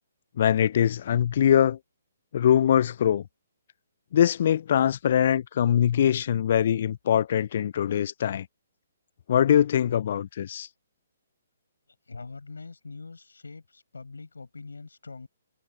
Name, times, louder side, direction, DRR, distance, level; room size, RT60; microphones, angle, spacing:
voice 1, 0.4-1.8 2.3-3.2 4.1-8.5 9.3-10.7, left 9 dB, 50° left, 0.4 m, -22 dB
voice 2, 12.1-15.3, left 4 dB, 80° left, 6.1 m, -43 dB
figure-of-eight pair, 135°, 0 cm